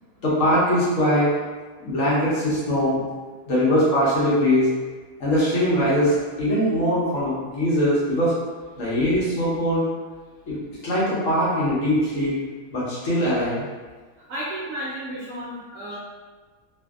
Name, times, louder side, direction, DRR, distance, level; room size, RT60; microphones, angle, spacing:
voice 1, 0.2-1.3 1.8-3.0 3.5-4.7 5.2-8.3 8.8-9.8 10.5-10.6 10.8-12.3 12.7-13.6, equal, 60° left, -8 dB, 1.1 m, -21 dB
voice 2, 14.3-16.0, right 1 dB, 70° right, -7 dB, 0.8 m, -32 dB
2.6 x 2.5 x 2.3 m, 1.4 s
omnidirectional pair, 1.7 m